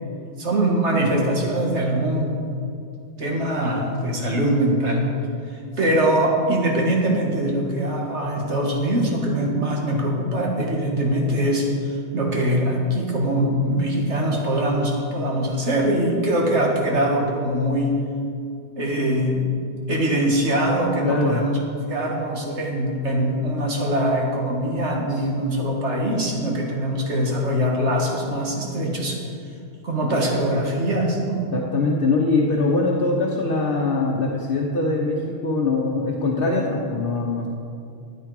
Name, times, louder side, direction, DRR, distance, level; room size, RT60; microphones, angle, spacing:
voice 1, 0.4-2.3 3.2-5.0 5.5-18.0 18.8-19.5 19.9-21.6 21.9-29.2 29.8-31.5, right 1 dB, 70° right, -1 dB, 1.9 m, -22 dB
voice 2, 21.0-21.4 25.1-25.2 31.5-37.5, left 3 dB, 50° left, -2 dB, 1.2 m, -22 dB
13.5 x 9.2 x 4.8 m, 2.4 s
omnidirectional pair, 1.2 m